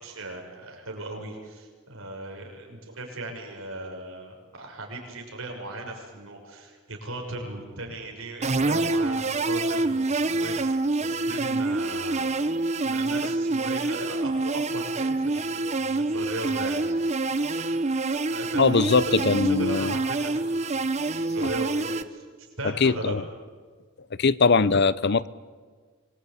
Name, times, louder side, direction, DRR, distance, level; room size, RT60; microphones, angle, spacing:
voice 1, 0.0-12.3 12.8-17.1 17.6-22.2 22.6-23.2, right 2 dB, 90° right, 1 dB, 6.5 m, -38 dB
sound 1, 8.4-22.0, right 2 dB, 35° right, 0.9 m, -26 dB
voice 2, 18.6-19.9 21.4-21.5 22.6-23.2 24.2-25.3, left 4 dB, 55° left, 18 dB, 0.7 m, -21 dB
25.5 x 21.5 x 8.7 m, 1.5 s
head